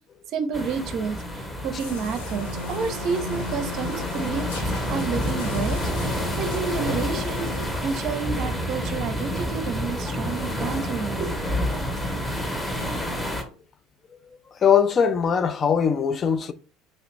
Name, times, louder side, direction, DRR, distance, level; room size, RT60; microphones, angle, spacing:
voice 1, 0.3-4.5 4.9-7.5 7.8-11.3, right 6 dB, 50° right, 0.5 m, -30 dB
sound 1, 0.5-13.4, equal, 15° left, 0.8 m, -29 dB
sound 2, 1.8-7.7, left 3 dB, 75° left, 0.8 m, -36 dB
voice 2, 14.6-16.5, left 7 dB, 35° left, 0.3 m, -20 dB
3.0 x 2.4 x 3.1 m
hypercardioid pair, 70°, 0 cm